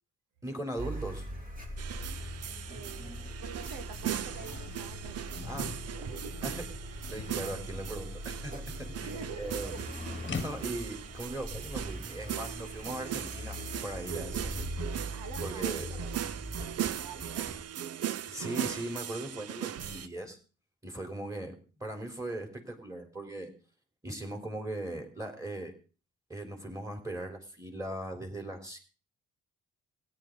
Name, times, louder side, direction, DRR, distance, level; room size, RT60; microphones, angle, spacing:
voice 1, 0.4-1.3 5.4-5.7 6.4-8.5 8.8-9.7 10.3-14.7 15.4-15.9 18.3-20.4 20.8-23.5 24.0-25.7 26.3-28.8, right 1 dB, 10° right, 4 dB, 3.9 m, -39 dB
Car, 0.8-17.6, equal, 30° right, 3.2 m, -41 dB
sound 1, 1.8-20.1, right 11 dB, 55° right, 0.7 m, -39 dB
sound 2, 2.2-2.3 2.6-10.9, left 6 dB, 40° left, 1.3 m, -46 dB
voice 2, 2.7-5.5 5.9-6.4 9.0-9.8 10.2-10.4 15.1-16.3 16.6-17.6, right 6 dB, 90° right, 8 dB, 1.5 m, -46 dB
16.5 x 10.5 x 4.0 m, 0.37 s
cardioid pair, 90°, 30 cm